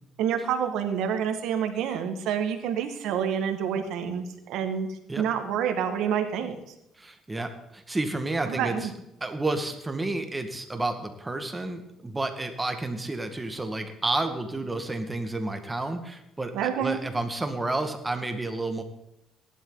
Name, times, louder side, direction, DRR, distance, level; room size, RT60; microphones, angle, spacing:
voice 1, 0.2-4.9 5.2-6.6 8.5-8.9 16.5-17.0, right 8 dB, 80° right, 6 dB, 1.9 m, -28 dB
voice 2, 7.0-8.9 9.2-18.8, right 2 dB, 15° right, 6 dB, 1.9 m, -30 dB
17.0 x 11.5 x 4.0 m, 0.82 s
cardioid pair, 95°, 0 cm